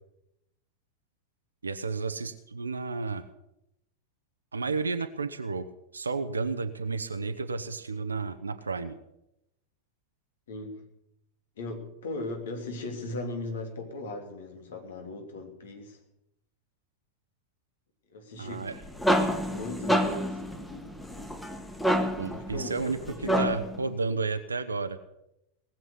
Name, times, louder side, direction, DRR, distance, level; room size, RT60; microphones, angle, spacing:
voice 1, 1.6-3.3 4.5-5.7 5.9-9.0 18.4-18.8 22.2-23.0 23.4-25.0, right 4 dB, 75° right, 9 dB, 0.8 m, -32 dB
voice 2, 10.5-10.8 11.6-16.0 18.1-18.7 19.1-20.4 22.3-23.5, left 2 dB, 60° left, 4 dB, 3.1 m, -38 dB
sound 1, 18.6-23.8, equal, 5° left, 1.6 m, -28 dB
19.0 x 7.8 x 8.4 m, 0.84 s
figure-of-eight pair, 90°, 0 cm